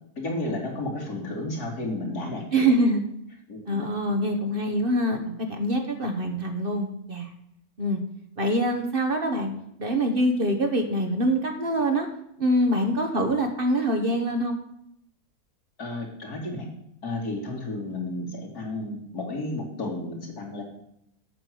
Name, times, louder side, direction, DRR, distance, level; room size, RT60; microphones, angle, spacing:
voice 1, 0.2-2.5 3.5-3.9 15.8-16.7 17.0-20.6, left 2 dB, 80° left, -2 dB, 3.0 m, -32 dB
voice 2, 2.5-3.0 3.6-7.3 7.8-8.0 8.4-9.5 9.8-12.1 12.4-14.6, right 1 dB, 40° right, 4 dB, 1.3 m, -24 dB
8.5 x 6.7 x 7.7 m, 0.76 s
omnidirectional pair, 1.6 m